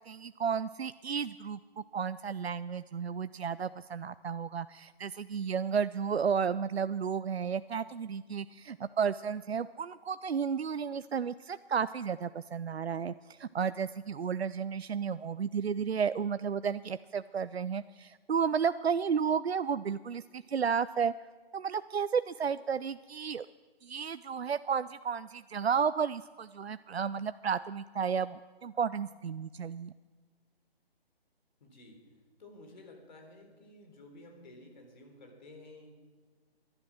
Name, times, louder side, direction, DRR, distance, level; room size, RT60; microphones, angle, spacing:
voice 1, 0.1-1.6 1.9-21.1 21.5-23.5 23.8-29.9, right 6 dB, 85° right, 14 dB, 0.5 m, -32 dB
voice 2, 31.6-32.0 32.4-35.9, left 2 dB, 45° left, 4 dB, 3.6 m, -53 dB
19.5 x 11.5 x 6.2 m, 1.4 s
figure-of-eight pair, 145°, 31 cm